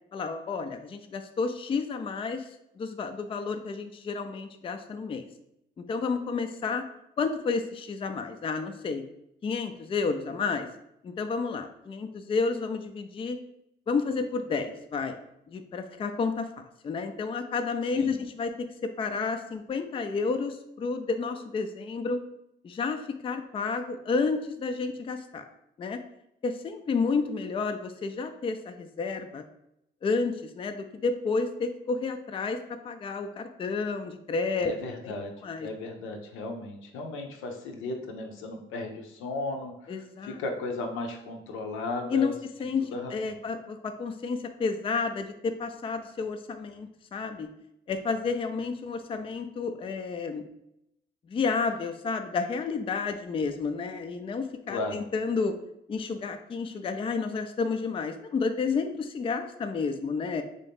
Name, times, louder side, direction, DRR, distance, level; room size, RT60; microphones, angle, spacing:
voice 1, 0.1-2.5 2.8-5.3 5.8-6.8 7.2-9.0 9.4-10.7 11.0-13.4 13.9-15.2 15.5-16.5 16.8-18.7 19.0-22.2 22.6-25.4 25.8-26.0 26.4-29.4 30.0-32.6 32.8-34.7 35.0-35.1 35.4-35.9 39.9-40.4 42.1-47.5 47.9-50.4 51.3-55.6 55.9-60.4, left 4 dB, 25° left, 7 dB, 0.3 m, -31 dB
voice 2, 34.6-42.3 42.9-43.4 54.7-55.0, left 2 dB, 90° left, 2 dB, 0.6 m, -35 dB
3.4 x 2.7 x 3.5 m, 0.81 s
cardioid pair, 90°, 20 cm